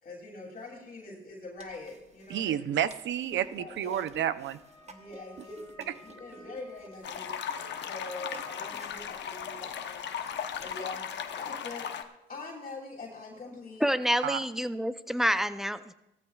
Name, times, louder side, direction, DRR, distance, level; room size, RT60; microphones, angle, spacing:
voice 1, 0.0-2.7 3.6-4.0 4.9-7.3 7.8-10.1 10.6-11.0 11.4-11.9 12.3-13.9, left 3 dB, 40° left, -4 dB, 2.9 m, -43 dB
sound 1, 1.6-11.7, right 4 dB, 35° right, 1.1 m, -53 dB
voice 2, 2.3-4.6 14.2-14.4, right 10 dB, 70° right, 14 dB, 0.6 m, -30 dB
Wind instrument woodwind instrument, 4.5-9.1, left 3 dB, 15° left, 1.8 m, -55 dB
sound 2, 7.0-12.0, left 8 dB, 65° left, 0.9 m, -37 dB
voice 3, 13.8-15.9, equal, ahead, 12 dB, 0.6 m, -28 dB
18.5 x 14.0 x 2.4 m, 0.94 s
cardioid pair, 90°, 20 cm